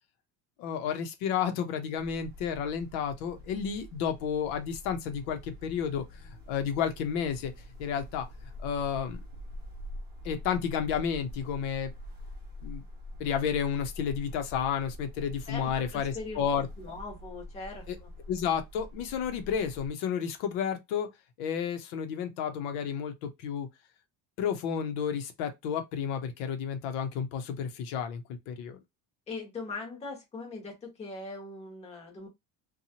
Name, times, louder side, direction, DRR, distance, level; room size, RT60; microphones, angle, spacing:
voice 1, 0.6-7.5 7.8-8.3 8.6-9.2 10.2-11.9 12.6-12.8 13.2-16.7 17.9-18.0 18.3-21.1 21.4-23.7 24.4-28.8, left 7 dB, 85° left, 0.8 m, -31 dB
sound 1, 1.9-19.9, equal, 25° right, 0.8 m, -45 dB
voice 2, 15.5-16.4 16.8-18.1 29.3-32.3, left 3 dB, 15° left, 0.8 m, -41 dB
2.7 x 2.3 x 2.8 m
cardioid pair, 180°, 40 cm